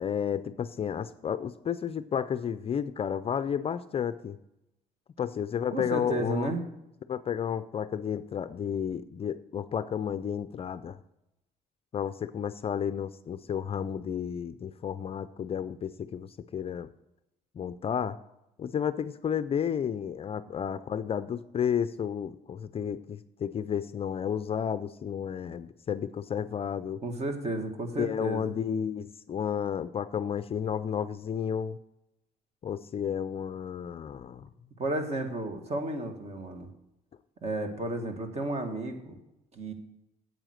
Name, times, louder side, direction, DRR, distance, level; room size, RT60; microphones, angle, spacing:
voice 1, 0.0-4.4 5.2-6.5 7.1-11.0 11.9-16.9 17.6-18.2 18.6-27.0 28.0-31.8 32.6-34.5, left 8 dB, 35° left, 12 dB, 0.4 m, -32 dB
voice 2, 5.7-6.6 27.0-28.6 34.8-36.7 37.4-39.2 39.5-39.7, right 2 dB, 40° right, 6 dB, 1.8 m, -33 dB
9.0 x 8.2 x 6.4 m, 0.90 s
cardioid pair, 110°, 17 cm